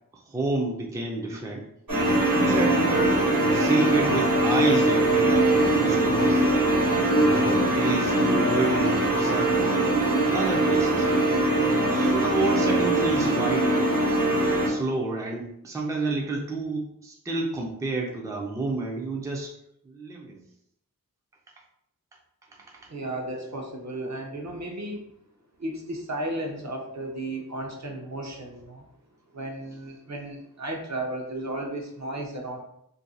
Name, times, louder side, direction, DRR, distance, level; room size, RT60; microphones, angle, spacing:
voice 1, 0.3-1.7 2.4-3.2 3.5-6.4 7.1-9.8 10.3-11.1 11.9-13.9 14.7-19.5 19.9-20.4, right 3 dB, 10° right, 0 dB, 0.4 m, -30 dB
sound 1, 1.9-14.7, right 1 dB, 70° right, 1.2 m, -22 dB
voice 2, 22.9-25.1 25.6-28.9 29.3-32.6, right 1 dB, 50° right, 1 dB, 0.7 m, -34 dB
2.6 x 2.3 x 3.9 m, 0.75 s
wide cardioid pair, 75°, 36 cm